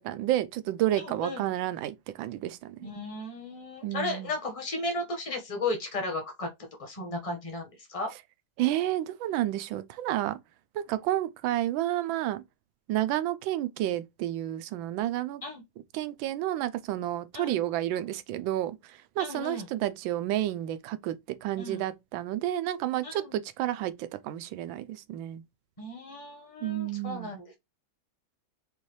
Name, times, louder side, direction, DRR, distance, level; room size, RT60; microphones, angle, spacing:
voice 1, 0.0-2.9 3.8-4.3 8.6-10.4 10.7-12.4 12.9-15.4 15.9-18.8 19.2-21.2 21.4-25.4 26.6-27.3, right 13 dB, 80° right, 1.3 m, -30 dB
voice 2, 1.0-1.4 2.8-6.5 6.8-8.1 15.4-15.6 17.3-17.6 19.2-19.7 21.6-21.8 23.0-23.4 25.8-27.5, left 2 dB, 20° left, 1.0 m, -35 dB
5.4 x 2.5 x 3.1 m
omnidirectional pair, 2.1 m